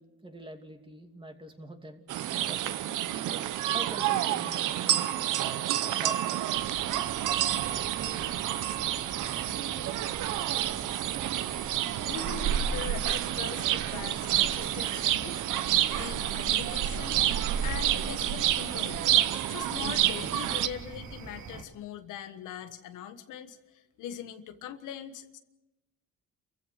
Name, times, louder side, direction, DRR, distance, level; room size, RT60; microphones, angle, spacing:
voice 1, 0.0-2.0 2.4-3.0 3.7-5.3 6.0-6.7, right 1 dB, 15° right, 4 dB, 2.7 m, -45 dB
sound 1, 2.1-20.7, right 12 dB, 85° right, 0.9 m, -29 dB
sound 2, 6.5-21.6, right 5 dB, 70° right, 2.6 m, -38 dB
voice 2, 12.0-15.5 15.9-17.2 17.6-19.2 19.5-25.4, left 10 dB, 90° left, 8 dB, 1.5 m, -41 dB
28.5 x 15.0 x 6.4 m, 0.97 s
cardioid pair, 90°, 30 cm